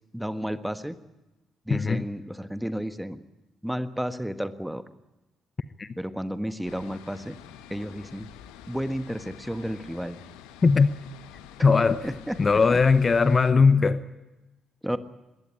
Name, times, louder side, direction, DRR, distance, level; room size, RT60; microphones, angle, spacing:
voice 1, 0.1-1.0 1.7-3.2 3.6-4.8 6.0-7.4 7.7-8.3 8.7-10.2 12.0-12.8 14.8-15.0, equal, 5° right, 12 dB, 1.4 m, -32 dB
voice 2, 1.7-2.0 5.8-5.9 10.6-10.9 11.6-12.1 12.4-14.0, left 4 dB, 35° left, 16 dB, 0.9 m, -19 dB
sound 1, 6.6-13.5, left 9 dB, 70° left, 1.2 m, -47 dB
21.0 x 17.0 x 9.9 m, 1.1 s
figure-of-eight pair, 45°, 0 cm